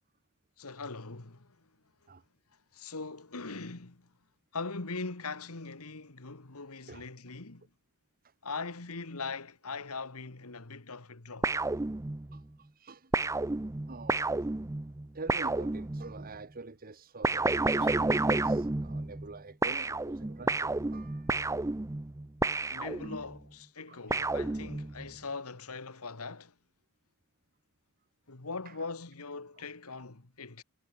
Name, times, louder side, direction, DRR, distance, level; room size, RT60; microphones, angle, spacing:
voice 1, 0.6-1.6 2.7-4.1 4.5-7.6 8.4-11.5 22.7-26.5 28.3-30.6, left 4 dB, 75° left, 1.9 m, -41 dB
sound 1, 11.4-12.4 13.1-16.3 17.2-19.3 19.6-23.4 24.1-25.1, right 2 dB, 15° right, 0.5 m, -31 dB
voice 2, 12.3-13.3 13.9-14.2 15.1-21.6 23.0-23.2 23.8-24.0 28.6-28.8 29.9-30.0, right 3 dB, 40° right, 1.3 m, -47 dB
sound 2, 17.8-18.7, left 4 dB, 45° left, 5.3 m, -57 dB
head